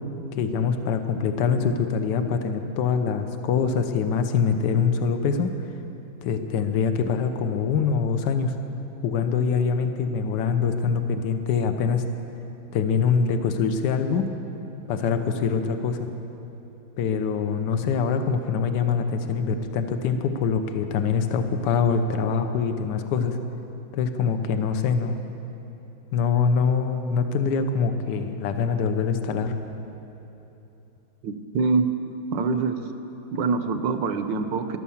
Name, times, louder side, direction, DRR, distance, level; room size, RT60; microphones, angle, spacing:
voice 1, 0.4-5.5 6.2-8.5 9.0-12.0 12.7-14.3 14.9-16.1 17.0-23.4 23.9-25.2 26.1-29.6, left 6 dB, 65° left, 7 dB, 1.3 m, -24 dB
voice 2, 31.2-31.9 32.3-32.8 33.3-34.8, right 4 dB, 70° right, 8 dB, 1.3 m, -24 dB
14.0 x 11.5 x 7.2 m, 3.0 s
omnidirectional pair, 2.2 m